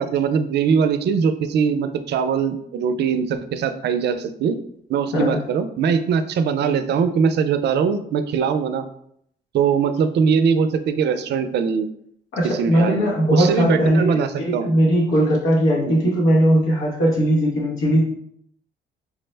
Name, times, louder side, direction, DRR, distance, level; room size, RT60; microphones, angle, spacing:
voice 1, 0.0-4.6 4.9-8.9 9.5-11.9 12.5-14.7 15.8-16.0, right 6 dB, 60° right, 10 dB, 0.4 m, -21 dB
voice 2, 5.1-5.4 12.3-18.0, equal, 85° left, -3 dB, 1.0 m, -19 dB
4.8 x 2.1 x 3.2 m, 0.70 s
cardioid pair, 90°, 20 cm